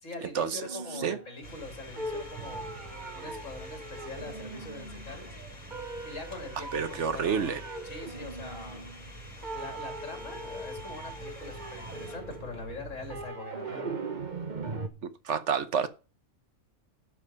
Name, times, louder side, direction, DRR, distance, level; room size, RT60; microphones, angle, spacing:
voice 1, 0.0-2.9 3.1-5.3 6.0-8.8 9.5-13.9, left 2 dB, 70° left, 3.1 m, -43 dB
sound 1, 0.6-1.7 2.0-5.3 5.7-9.2 9.4-14.9, right 3 dB, 35° right, 1.2 m, -40 dB
sound 2, 1.4-13.3, right 1 dB, 25° left, 4.7 m, -45 dB
voice 2, 6.6-7.6 15.0-15.9, right 7 dB, 65° right, 1.1 m, -29 dB
11.5 x 5.9 x 5.4 m
omnidirectional pair, 1.4 m